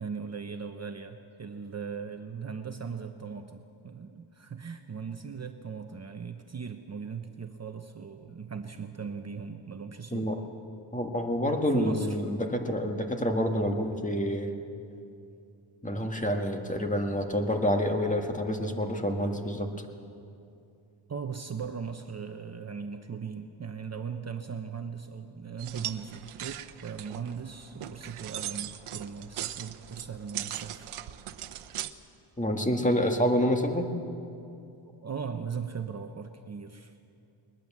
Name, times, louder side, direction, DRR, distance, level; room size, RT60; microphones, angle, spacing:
voice 1, 0.0-10.3 11.7-12.2 21.1-30.9 35.0-36.9, right 6 dB, 30° right, 6 dB, 0.9 m, -38 dB
voice 2, 10.9-14.5 15.8-19.7 32.4-33.9, equal, 15° left, 4 dB, 1.8 m, -28 dB
sound 1, 25.6-31.9, right 11 dB, 85° right, 0.9 m, -39 dB
20.5 x 20.5 x 7.4 m, 2.6 s
wide cardioid pair, 130°, 49 cm